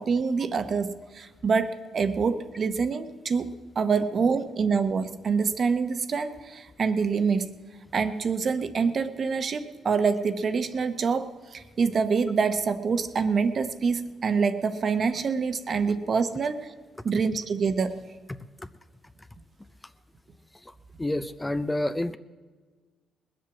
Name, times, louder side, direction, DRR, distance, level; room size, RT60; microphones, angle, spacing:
voice 1, 0.0-7.5 7.9-16.7 17.0-18.0, right 5 dB, 50° right, 10 dB, 0.9 m, -26 dB
voice 2, 21.0-22.2, left 1 dB, 15° left, 12 dB, 0.5 m, -28 dB
20.0 x 7.7 x 7.2 m, 1.4 s
cardioid pair, 90°, 0 cm